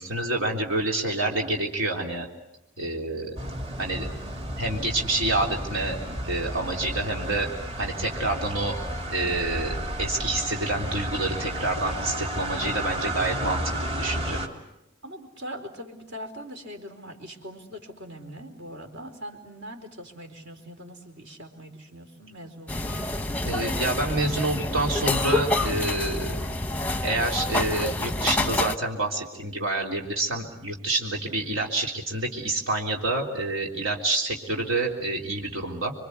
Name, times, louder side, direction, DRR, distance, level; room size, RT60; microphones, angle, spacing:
voice 1, 0.0-2.3 2.8-3.4 3.8-4.1 4.6-6.0 6.2-7.5 7.8-8.8 9.1-14.4 23.4-26.4 27.0-35.9, right 2 dB, 80° right, 0 dB, 3.6 m, -28 dB
sound 1, 3.4-14.5, right 1 dB, 30° right, 2.9 m, -32 dB
voice 2, 15.0-23.1, equal, 60° right, 4 dB, 4.4 m, -41 dB
sound 2, 22.7-28.8, left 2 dB, 10° left, 0.9 m, -27 dB
28.0 x 24.0 x 8.3 m, 0.87 s
head